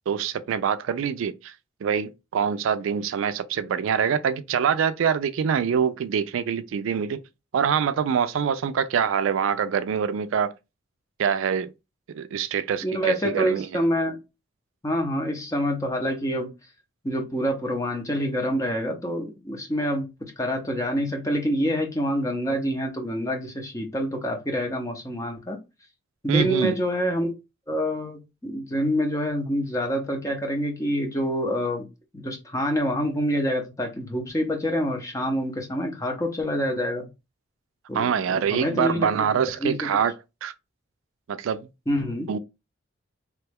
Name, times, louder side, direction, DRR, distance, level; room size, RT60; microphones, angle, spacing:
voice 1, 0.1-1.5 1.8-7.2 7.5-10.5 11.2-11.7 12.1-13.7 26.3-26.7 37.9-40.1 40.4-40.5 41.3-41.7 42.3-42.4, right 7 dB, 75° right, 0.3 m, -25 dB
voice 2, 12.8-14.2 14.8-16.5 17.0-25.6 26.2-27.3 27.7-31.9 32.1-37.1 37.9-38.2 38.5-39.1 39.6-39.7 41.9-42.3, equal, 15° left, 0.6 m, -26 dB
3.0 x 2.2 x 3.3 m
head